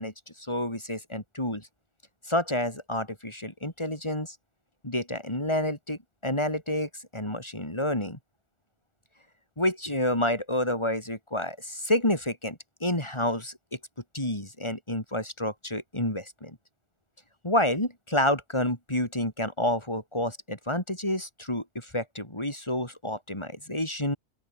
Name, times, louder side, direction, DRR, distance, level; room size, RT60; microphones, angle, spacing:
voice 1, 0.0-1.7 2.3-4.4 4.8-8.2 9.6-13.8 14.1-16.6 17.4-24.2, left 1 dB, 25° left, 5.0 m, -29 dB
open air
omnidirectional pair, 1.1 m